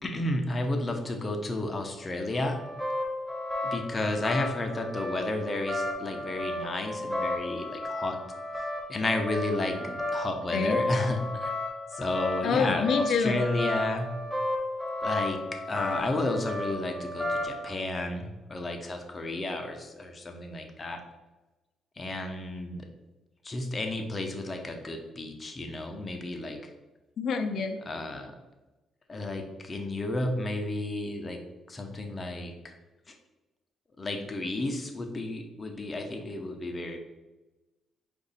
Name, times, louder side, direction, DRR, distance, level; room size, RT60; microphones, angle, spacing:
voice 1, 0.0-2.6 3.6-8.2 8.9-11.5 11.9-14.1 15.0-15.4 15.7-21.0 22.0-22.8 23.4-26.6 27.9-28.3 29.1-31.4 31.7-32.7 34.0-37.0, left 2 dB, 30° left, 4 dB, 0.8 m, -32 dB
sound 1, 2.3-17.7, left 1 dB, 15° right, 1.1 m, -33 dB
voice 2, 10.5-10.8 12.4-13.4 27.2-27.8, left 5 dB, 65° left, 6 dB, 0.5 m, -27 dB
5.0 x 2.6 x 4.1 m, 1.1 s
cardioid pair, 90°, 0 cm